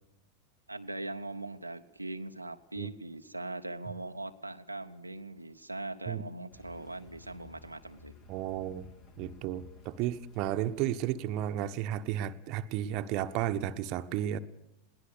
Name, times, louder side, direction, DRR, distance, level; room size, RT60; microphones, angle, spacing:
voice 1, 0.7-8.1, right 2 dB, 85° right, 6 dB, 0.8 m, -41 dB
Car, 6.5-11.6, left 4 dB, 40° left, 3.3 m, -55 dB
voice 2, 8.3-8.9 9.2-14.4, right 11 dB, 40° right, 9 dB, 1.1 m, -33 dB
21.5 x 18.0 x 6.7 m, 0.90 s
figure-of-eight pair, 90°, 0 cm